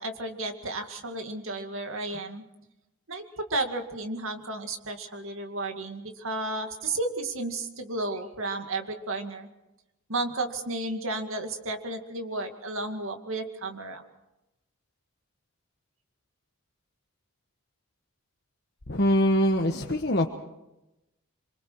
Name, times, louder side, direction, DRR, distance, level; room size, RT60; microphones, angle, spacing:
voice 1, 0.0-2.4 3.1-9.5 10.1-14.0, right 2 dB, 60° right, 5 dB, 2.3 m, -33 dB
voice 2, 18.9-20.3, left 1 dB, 45° left, 1 dB, 1.3 m, -23 dB
26.0 x 23.5 x 4.8 m, 0.95 s
head